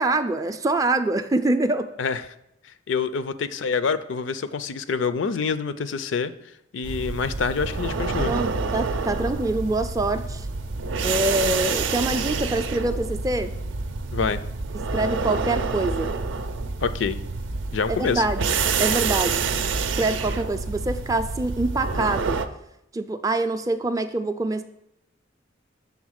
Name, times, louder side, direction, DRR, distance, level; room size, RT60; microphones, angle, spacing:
voice 1, 0.0-1.9 8.3-10.5 11.0-13.5 14.9-16.2 17.9-18.5 18.8-19.5 19.9-22.4 22.9-24.6, right 2 dB, 20° right, 8 dB, 0.4 m, -25 dB
voice 2, 2.9-6.3 6.7-8.3 14.1-14.4 16.8-17.2 17.7-18.2, left 5 dB, 70° left, 13 dB, 0.4 m, -26 dB
sound 1, 6.8-22.5, right 4 dB, 75° right, 0.5 m, -27 dB
7.1 x 3.8 x 6.4 m, 0.81 s
head